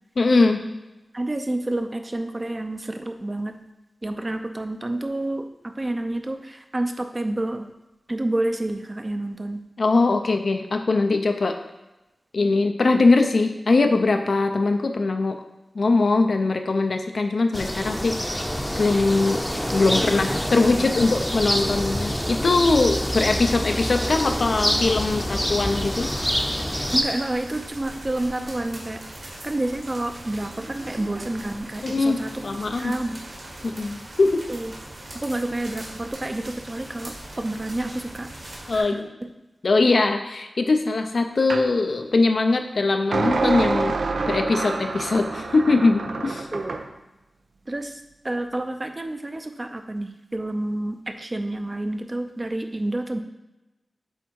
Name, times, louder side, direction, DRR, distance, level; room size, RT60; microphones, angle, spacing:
voice 1, 0.2-0.6 9.8-11.5 12.3-15.4 15.7-18.4 18.8-19.4 19.7-26.1 31.8-32.9 33.6-34.4 38.7-39.1 39.6-43.9 44.3-46.5, left 3 dB, 65° left, 6 dB, 0.6 m, -21 dB
voice 2, 1.1-3.6 4.0-7.7 8.1-9.6 26.9-33.2 34.5-34.8 35.1-38.3 38.7-39.3 46.5-46.9 47.7-53.2, right 1 dB, 30° right, 6 dB, 0.6 m, -29 dB
sound 1, 17.5-27.0, equal, 5° left, 0.7 m, -26 dB
sound 2, 24.0-38.8, right 1 dB, 60° right, 1.7 m, -40 dB
sound 3, 41.5-41.7 43.1-46.9, right 3 dB, 85° right, 0.5 m, -26 dB
7.9 x 3.5 x 4.6 m, 1.0 s
wide cardioid pair, 70°, 0 cm